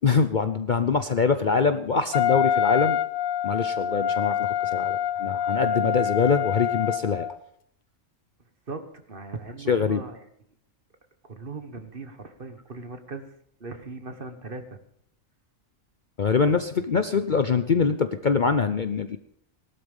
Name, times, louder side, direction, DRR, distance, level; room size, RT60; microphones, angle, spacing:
voice 1, 0.0-3.0 3.4-7.3 9.7-10.0 16.2-19.2, left 5 dB, 45° left, 10 dB, 0.7 m, -24 dB
Wind instrument woodwind instrument, 2.1-7.4, left 9 dB, 85° left, 1.2 m, -26 dB
voice 2, 9.1-10.3 11.2-13.3 13.6-14.8, right 3 dB, 45° right, 8 dB, 1.7 m, -39 dB
18.5 x 12.5 x 5.4 m, 0.70 s
omnidirectional pair, 1.4 m